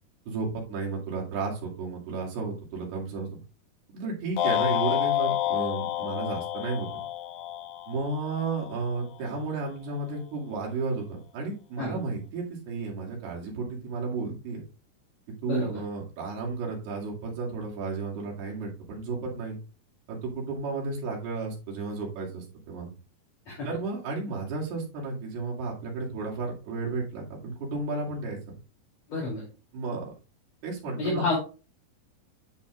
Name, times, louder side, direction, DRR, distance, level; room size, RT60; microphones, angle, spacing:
voice 1, 0.3-3.3 3.9-6.9 7.9-14.6 15.4-19.6 20.1-22.9 23.6-28.4 29.7-30.1 30.6-31.2, right 3 dB, 80° right, -2 dB, 4.3 m, -33 dB
sound 1, 4.4-8.7, left 13 dB, 75° left, 1.9 m, -29 dB
voice 2, 15.5-15.8 23.5-23.7 29.1-29.4 31.0-31.4, left 2 dB, 45° left, -5 dB, 3.8 m, -29 dB
9.8 x 7.2 x 2.4 m, 0.33 s
omnidirectional pair, 4.5 m